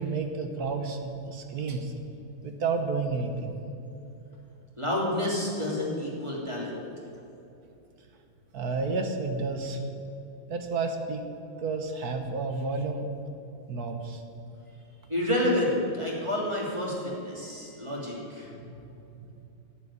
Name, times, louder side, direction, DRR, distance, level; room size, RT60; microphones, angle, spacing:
voice 1, 0.0-1.9 2.4-3.5 8.5-9.8 10.5-11.2 11.6-13.1 13.7-14.2, right 4 dB, 55° right, 5 dB, 1.4 m, -31 dB
voice 2, 4.8-6.8 15.1-18.5, left 1 dB, 15° right, -4 dB, 2.8 m, -29 dB
10.5 x 8.1 x 9.9 m, 2.8 s
omnidirectional pair, 2.2 m